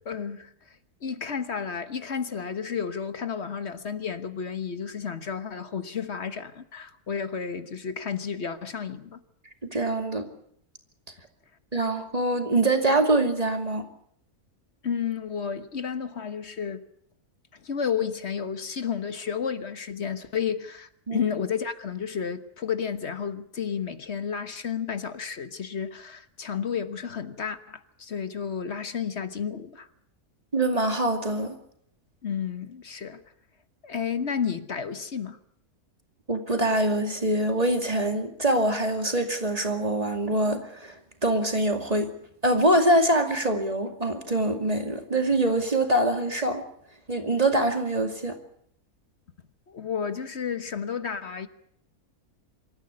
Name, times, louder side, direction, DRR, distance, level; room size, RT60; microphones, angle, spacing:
voice 1, 0.0-0.5 1.0-9.2 14.8-16.8 17.5-29.9 32.2-33.2 33.8-35.4 49.7-51.5, left 7 dB, 50° left, 1.4 m, -32 dB
voice 2, 9.7-10.3 11.7-13.9 21.1-21.2 30.5-31.6 36.3-42.1 42.4-46.6 47.1-48.4, right 1 dB, 25° right, 2.4 m, -24 dB
26.0 x 13.5 x 9.7 m
omnidirectional pair, 1.6 m